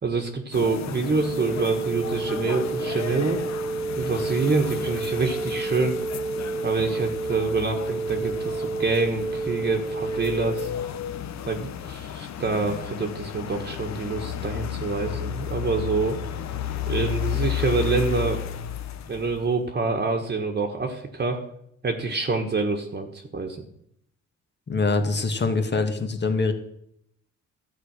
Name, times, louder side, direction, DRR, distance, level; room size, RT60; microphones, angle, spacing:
voice 1, 0.0-3.4 4.0-6.0 6.6-10.7 11.5-16.2 16.9-18.4 19.1-21.4 21.8-23.6, right 4 dB, 35° right, 3 dB, 1.5 m, -26 dB
sound 1, 0.5-19.6, left 10 dB, 65° left, 1.0 m, -33 dB
sound 2, 1.2-10.7, right 3 dB, 5° right, 0.6 m, -30 dB
voice 2, 24.7-26.5, left 3 dB, 35° left, 6 dB, 1.8 m, -24 dB
13.0 x 5.0 x 8.9 m, 0.73 s
cardioid pair, 90°, 30 cm